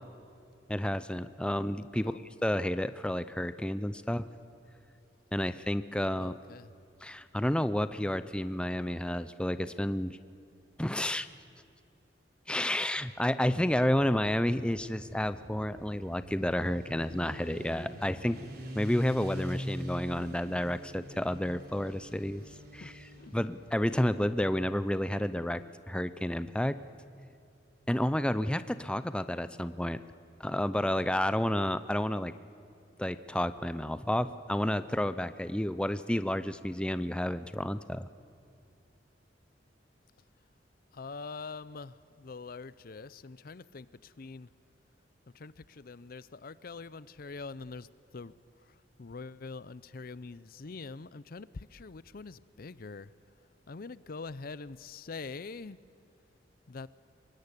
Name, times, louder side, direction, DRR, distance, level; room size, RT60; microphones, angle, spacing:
voice 1, 0.7-2.1 2.4-4.3 5.3-6.3 7.0-10.2 10.8-11.3 12.5-18.4 18.8-22.4 22.7-22.9 23.3-25.6 25.9-26.8 27.9-30.0 30.4-32.3 33.0-38.1, left 1 dB, 5° left, 13 dB, 0.6 m, -30 dB
voice 2, 6.2-6.7 22.8-23.4 40.9-44.5 45.3-47.9 48.1-48.3 48.7-53.1 53.7-55.8 56.7-56.9, left 4 dB, 55° left, 18 dB, 0.6 m, -44 dB
Motorcycle, 13.7-25.2, equal, 55° right, 3.6 m, -44 dB
24.0 x 21.5 x 9.8 m, 2.6 s
head